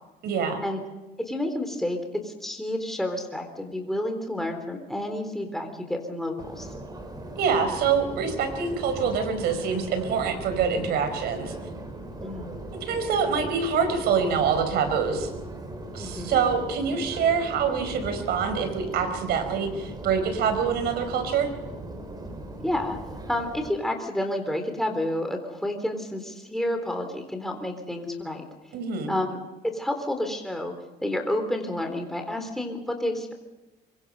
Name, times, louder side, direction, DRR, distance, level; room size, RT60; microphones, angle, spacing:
voice 1, 0.2-0.6 7.4-11.5 12.7-15.3 15.9-21.5 28.7-29.1, right 6 dB, 75° right, 8 dB, 4.7 m, -25 dB
voice 2, 1.3-2.0 2.2-6.7 12.2-12.5 16.0-16.4 22.6-23.0 23.3-28.4 29.1-29.4 29.7-30.7 31.0-33.3, left 1 dB, ahead, 4 dB, 3.8 m, -30 dB
Subway metro underground, 6.4-23.7, right 1 dB, 25° right, 5.1 m, -38 dB
25.0 x 24.0 x 5.5 m, 1.1 s
cardioid pair, 110°, 17 cm